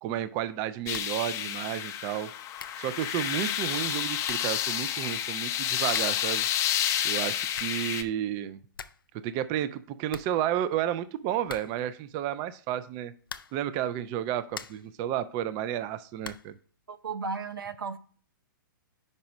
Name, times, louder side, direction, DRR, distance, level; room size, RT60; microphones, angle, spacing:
voice 1, 0.0-2.3 2.8-6.4 7.0-8.6 9.1-13.1 13.5-16.6, right 11 dB, 30° right, 0.4 m, -32 dB
sound 1, 0.9-1.3 1.5-1.6 2.2-2.3 2.6-2.9 3.8-3.9 4.2-4.6 5.9-6.3 7.3-7.9 8.3-8.4 8.5-9.1 9.4-9.5 9.7-9.8 10.1-10.9 11.4-12.0 13.2-13.7 14.2-15.0 16.2-16.6, left 6 dB, 85° left, 0.4 m, -44 dB
sound 2, 0.9-8.0, left 10 dB, 25° left, 0.5 m, -30 dB
voice 2, 16.9-18.0, right 4 dB, 80° right, 0.7 m, -34 dB
5.3 x 4.7 x 5.1 m
hypercardioid pair, 120°, 11 cm